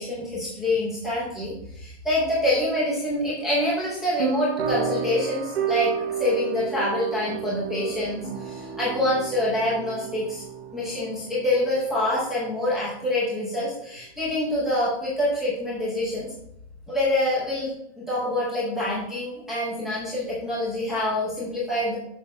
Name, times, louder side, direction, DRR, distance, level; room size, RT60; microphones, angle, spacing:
voice 1, 0.0-5.9 6.2-10.4 10.7-16.3 16.9-22.0, left 1 dB, ahead, -10 dB, 0.6 m, -26 dB
sound 1, 4.2-12.3, right 7 dB, 75° right, 1.4 m, -31 dB
6.5 x 5.0 x 4.2 m, 0.76 s
hypercardioid pair, 180°, 33 cm